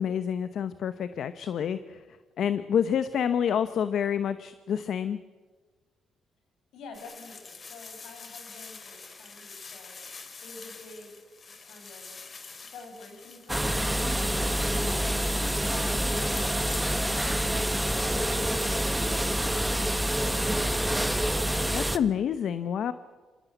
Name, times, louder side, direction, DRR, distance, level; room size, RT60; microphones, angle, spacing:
voice 1, 0.0-2.0 2.4-5.2 21.7-22.9, left 8 dB, 65° left, 12 dB, 0.9 m, -28 dB
voice 2, 6.7-9.9 10.4-12.2 12.7-17.6 17.8-18.4, left 3 dB, 80° left, 4 dB, 6.6 m, -49 dB
sound 1, 6.9-18.0, left 4 dB, 40° left, 2.9 m, -46 dB
sound 2, 13.5-22.0, right 1 dB, 5° right, 1.3 m, -27 dB
26.0 x 18.5 x 8.1 m, 1.4 s
cardioid pair, 90°, 0 cm